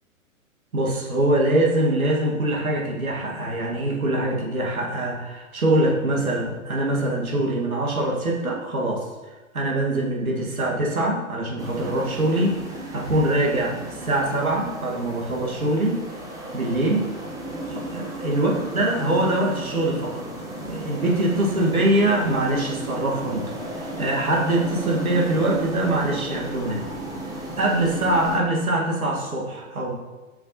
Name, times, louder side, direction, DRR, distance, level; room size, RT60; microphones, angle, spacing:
voice 1, 0.7-12.6 12.9-16.0 16.5-17.1 17.7-20.3 20.6-26.8 27.6-29.9, right 1 dB, 80° right, -2 dB, 1.9 m, -23 dB
sound 1, 11.6-28.4, right 1 dB, 10° right, 1.1 m, -34 dB
7.3 x 5.6 x 2.9 m, 1.2 s
figure-of-eight pair, 120°, 42 cm